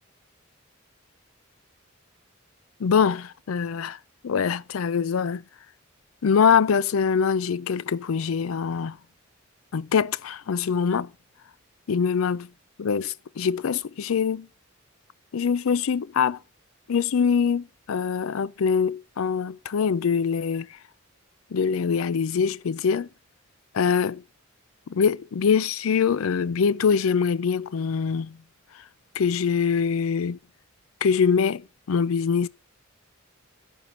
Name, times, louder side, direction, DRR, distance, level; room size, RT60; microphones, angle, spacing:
voice 1, 2.8-4.0 4.2-5.4 6.2-9.0 9.7-11.1 11.9-12.5 12.8-14.5 15.3-16.4 16.9-20.7 21.5-23.1 23.7-24.2 24.9-28.4 29.2-30.4 31.0-32.5, left 6 dB, 85° left, 0.4 m, -23 dB
11.0 x 4.6 x 5.4 m
head